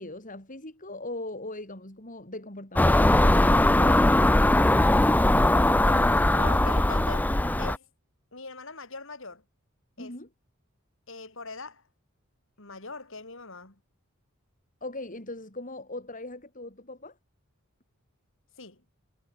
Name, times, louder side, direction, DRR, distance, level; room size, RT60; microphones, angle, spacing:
voice 1, 0.0-4.1 10.0-10.3 14.8-17.2, left 2 dB, 40° left, 5.6 m, -39 dB
Car passing by / Engine, 2.8-7.8, left 1 dB, 10° left, 0.4 m, -20 dB
voice 2, 5.3-7.3 7.6-7.9 8.3-9.4 10.0-10.2 11.1-11.8 12.6-13.8 18.6-18.8, left 3 dB, 65° left, 5.1 m, -41 dB
head